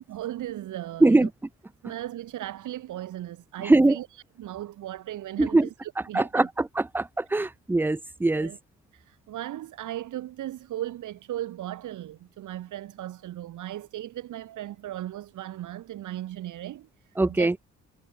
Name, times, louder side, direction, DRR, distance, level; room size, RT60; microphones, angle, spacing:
voice 1, 0.1-1.3 1.8-4.1 4.4-6.5 7.4-7.5 8.3-8.6 8.9-17.6, right 13 dB, 80° right, 5.1 m, -37 dB
voice 2, 3.6-4.0 5.4-5.7 6.1-8.5 17.2-17.6, right 2 dB, 5° right, 0.5 m, -22 dB
cardioid pair, 90°, 30 cm